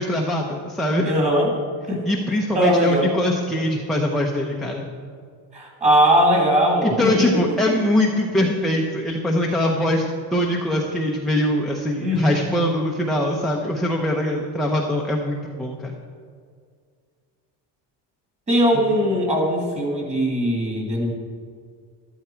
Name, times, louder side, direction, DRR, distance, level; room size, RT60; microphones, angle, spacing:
voice 1, 0.0-1.1 2.1-4.9 6.8-15.9, left 1 dB, ahead, -2 dB, 0.6 m, -22 dB
voice 2, 1.0-1.5 1.9-2.0 2.3-3.2 5.5-7.7 12.0-12.5 18.5-21.1, equal, 15° right, 0 dB, 2.3 m, -20 dB
12.5 x 12.0 x 4.5 m, 2.1 s
cardioid pair, 170°, 42 cm